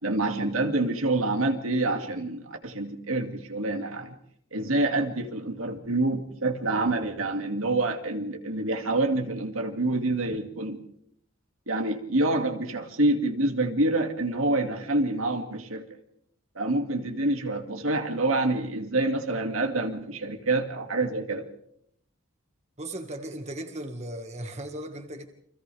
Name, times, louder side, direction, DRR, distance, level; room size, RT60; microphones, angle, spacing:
voice 1, 0.0-4.1 4.5-10.8 11.7-15.9 16.6-21.5, right 2 dB, 80° right, 4 dB, 2.4 m, -27 dB
voice 2, 22.8-25.3, right 1 dB, 35° right, 5 dB, 1.8 m, -37 dB
29.5 x 25.5 x 3.5 m, 0.71 s
head